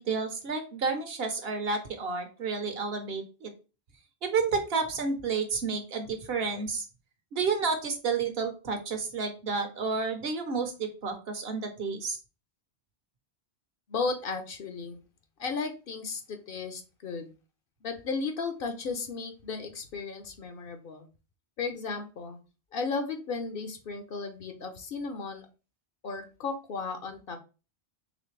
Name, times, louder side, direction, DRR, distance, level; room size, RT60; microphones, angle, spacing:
voice 1, 0.0-3.5 4.2-6.9 7.3-12.2, right 4 dB, 70° right, 6 dB, 1.1 m, -30 dB
voice 2, 13.9-15.0 15.4-17.3 17.8-21.1 21.6-22.4 22.7-25.5 26.0-27.4, left 4 dB, 60° left, 7 dB, 0.9 m, -35 dB
4.1 x 3.1 x 3.2 m, 0.32 s
omnidirectional pair, 1.1 m